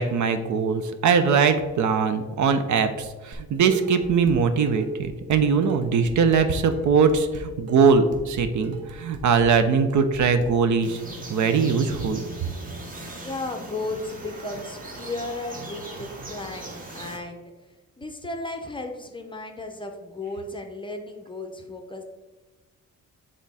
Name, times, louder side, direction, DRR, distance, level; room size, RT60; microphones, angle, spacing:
voice 1, 0.0-11.0 11.3-12.2, right 5 dB, 70° right, 9 dB, 0.7 m, -21 dB
Dishes pots and pans, 3.3-4.4 4.7-10.5, right 4 dB, 50° right, 1.0 m, -39 dB
sound 1, 10.8-17.2, right 1 dB, 25° right, 1.0 m, -39 dB
voice 2, 13.2-17.5 18.0-22.0, left 2 dB, 15° left, 4 dB, 0.5 m, -34 dB
8.2 x 3.7 x 4.1 m, 1.2 s
wide cardioid pair, 170°, 31 cm